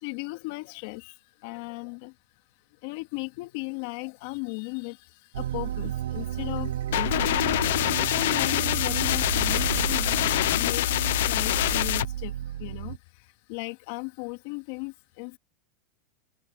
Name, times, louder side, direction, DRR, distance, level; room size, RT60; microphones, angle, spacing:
voice 1, 0.0-2.1 2.8-7.4 8.0-15.4, left 27 dB, 60° left, 2.4 m, -37 dB
sound 1, 5.3-13.0, right 12 dB, 90° right, 0.4 m, -32 dB
sound 2, 6.9-12.0, left 14 dB, 75° left, 0.6 m, -25 dB
supercardioid pair, 140°, 0 cm